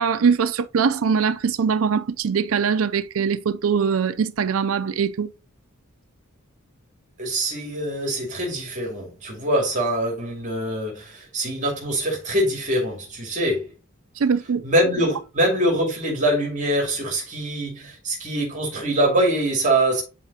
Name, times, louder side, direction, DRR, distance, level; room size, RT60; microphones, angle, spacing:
voice 1, 0.0-5.3 14.2-14.6, right 6 dB, 65° right, 0.5 m, -22 dB
voice 2, 7.2-13.7 14.6-20.0, right 1 dB, 35° right, 2.4 m, -24 dB
11.0 x 4.1 x 2.8 m
head